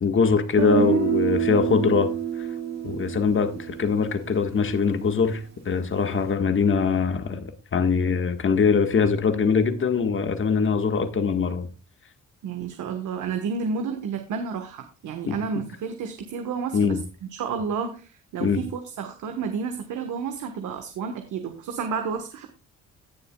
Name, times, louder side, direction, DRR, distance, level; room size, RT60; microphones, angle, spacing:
voice 1, 0.0-2.1 2.8-11.7 15.3-15.4 16.7-17.0 18.4-18.6, left 5 dB, 40° left, 1.7 m, -22 dB
Guitar, 0.6-4.5, right 8 dB, 60° right, 3.2 m, -27 dB
voice 2, 12.4-22.5, right 6 dB, 80° right, 1.5 m, -31 dB
17.5 x 7.0 x 2.4 m
cardioid pair, 90°, 30 cm